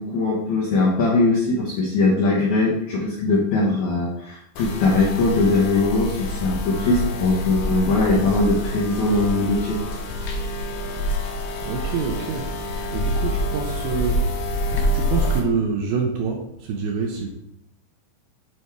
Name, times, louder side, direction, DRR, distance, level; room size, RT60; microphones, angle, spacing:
voice 1, 0.0-9.8, left 3 dB, 90° left, -4 dB, 1.6 m, -21 dB
sound 1, 4.6-15.4, equal, 75° left, 2.5 m, -26 dB
voice 2, 11.6-12.5 12.9-17.3, right 5 dB, 80° right, 1 dB, 2.4 m, -27 dB
9.4 x 3.5 x 4.5 m, 0.77 s
omnidirectional pair, 5.2 m